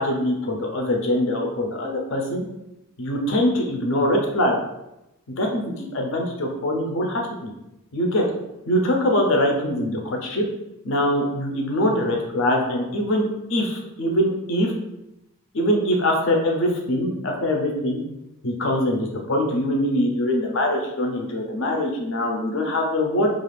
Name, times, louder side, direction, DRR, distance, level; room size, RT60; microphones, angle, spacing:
voice 1, 0.0-2.4 3.0-4.6 5.4-7.5 7.9-8.2 8.7-10.4 10.8-14.7 15.5-18.0 18.4-23.3, left 1 dB, 60° left, 1 dB, 0.5 m, -23 dB
2.4 x 2.4 x 3.2 m, 0.89 s
head